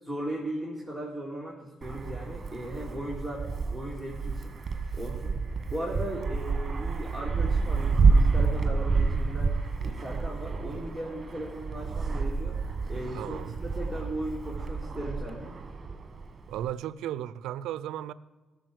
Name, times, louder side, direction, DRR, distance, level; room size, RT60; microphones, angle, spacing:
voice 1, 0.0-3.4 3.7-4.6 4.9-5.3 5.7-12.5 12.9-15.5, right 1 dB, 10° left, 2.4 m, -37 dB
Wind, 1.8-16.7, right 4 dB, 35° right, 1.3 m, -29 dB
voice 2, 10.5-10.8 13.1-13.6 16.5-18.1, right 11 dB, 90° right, 0.4 m, -35 dB
15.5 x 6.4 x 6.3 m
cardioid pair, 90°, 0 cm